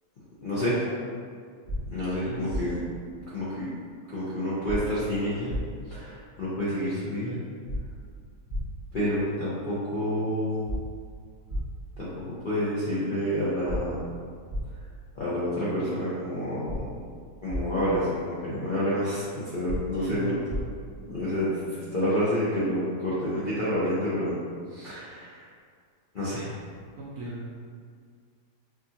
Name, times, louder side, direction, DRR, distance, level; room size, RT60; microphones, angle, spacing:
voice 1, 0.4-0.8 1.9-2.8 3.3-3.7 4.1-5.6 5.9-7.4 8.9-10.6 12.0-14.0 15.2-16.9 17.4-20.4 21.1-24.3 24.7-25.4 26.1-26.4, equal, 55° left, -11 dB, 0.5 m, -29 dB
sound 1, 1.6-1.8 2.5-2.6 4.6-4.8 5.5-5.6 7.6-7.8 8.5-8.6 10.6-10.8 11.5-11.6 13.6-13.8 14.5-14.6 16.6-16.8 17.5-17.6 19.6-19.8 20.5-20.6, equal, 80° left, 1.6 m, -31 dB
voice 2, 20.0-20.6 27.0-27.4, right 2 dB, 65° right, -5 dB, 0.9 m, -36 dB
4.8 x 2.6 x 2.7 m, 2.1 s
omnidirectional pair, 1.8 m